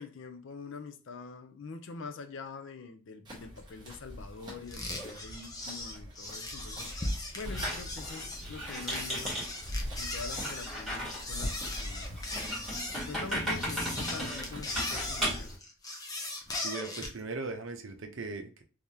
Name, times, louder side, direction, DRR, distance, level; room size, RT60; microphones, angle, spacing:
voice 1, 0.0-9.5 10.0-15.5, left 4 dB, 60° left, 0.5 m, -45 dB
sound 1, 3.2-14.6, right 1 dB, 20° right, 1.1 m, -47 dB
sound 2, 4.7-17.2, left 2 dB, 15° left, 0.6 m, -38 dB
Squeak, 7.4-15.6, equal, ahead, 1.9 m, -36 dB
voice 2, 16.6-18.6, right 3 dB, 60° right, 0.6 m, -38 dB
3.5 x 3.4 x 2.7 m
head